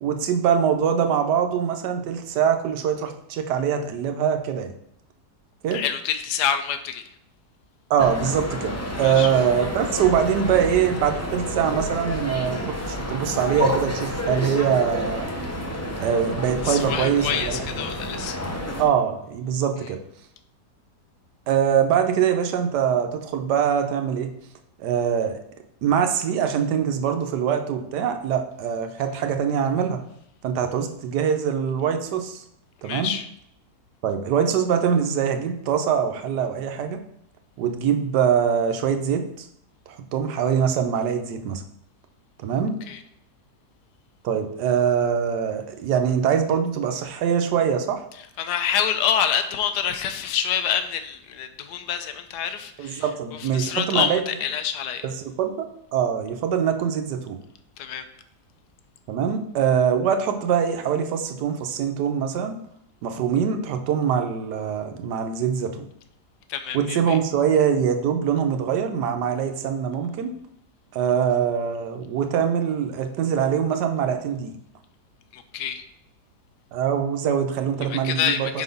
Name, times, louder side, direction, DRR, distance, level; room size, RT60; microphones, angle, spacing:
voice 1, 0.0-4.7 5.6-5.8 7.9-15.3 16.0-17.6 18.8-20.0 21.5-24.3 24.8-25.4 25.8-30.0 30.4-32.4 32.8-33.1 34.0-37.0 37.6-39.5 39.9-41.6 42.4-42.8 44.2-48.0 52.8-54.2 55.0-57.4 59.1-62.6 63.0-65.9 66.7-70.3 70.9-74.5 76.7-78.6, right 8 dB, 85° right, 6 dB, 1.3 m, -23 dB
voice 2, 5.7-7.0 9.0-9.3 16.6-18.4 32.8-33.3 42.9-43.0 48.4-55.1 57.8-58.0 66.5-67.2 75.3-75.8 77.9-78.6, left 8 dB, 85° left, 9 dB, 1.2 m, -27 dB
sound 1, 8.0-18.8, left 1 dB, 20° left, 0.4 m, -29 dB
5.2 x 4.1 x 5.3 m, 0.75 s
omnidirectional pair, 1.8 m